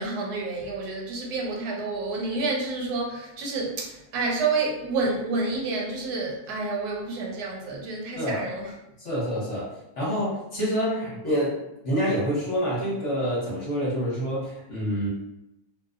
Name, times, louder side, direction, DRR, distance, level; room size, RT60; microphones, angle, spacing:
voice 1, 0.0-8.7, right 3 dB, 80° right, -1 dB, 1.1 m, -29 dB
voice 2, 9.0-15.1, equal, 55° left, -6 dB, 1.0 m, -27 dB
2.6 x 2.0 x 2.3 m, 0.85 s
omnidirectional pair, 1.7 m